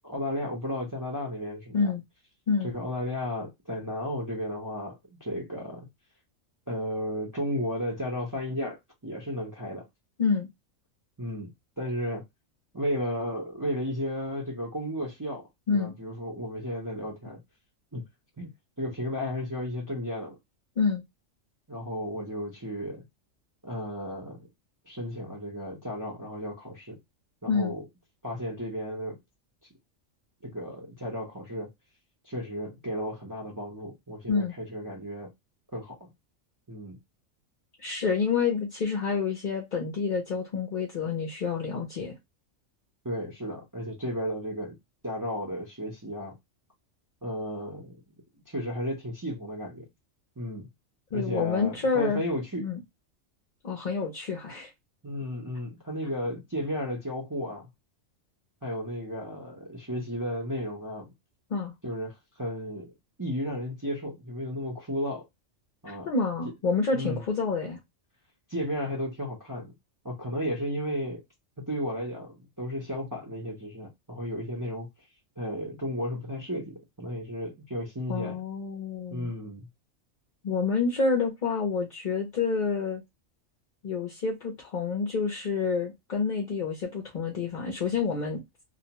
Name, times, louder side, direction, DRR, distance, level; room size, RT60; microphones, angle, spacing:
voice 1, 0.0-1.9 2.6-5.9 6.7-9.9 11.2-12.2 12.7-17.4 17.9-18.0 18.4-18.5 18.8-20.4 21.7-23.0 23.6-24.5 24.9-27.0 27.4-27.9 28.2-29.2 30.4-31.7 32.2-35.3 35.7-36.1 36.7-37.0 43.0-44.8 45.0-46.4 47.2-48.0 48.5-49.9 50.4-50.7 51.1-52.7 55.0-57.7 58.6-61.1 61.8-62.9 63.2-65.2 65.8-66.1 66.9-67.2 68.5-69.7 70.0-71.2 71.7-74.9 75.4-78.4 79.1-79.7, equal, 20° right, 0.5 m, -34 dB
voice 2, 37.8-42.1 51.1-52.2 52.6-52.8 53.6-54.7 61.5-61.7 65.9-67.8 78.1-79.3 80.4-83.0 83.8-88.4, left 5 dB, 50° left, 0.6 m, -28 dB
2.5 x 2.2 x 2.8 m
omnidirectional pair, 1.3 m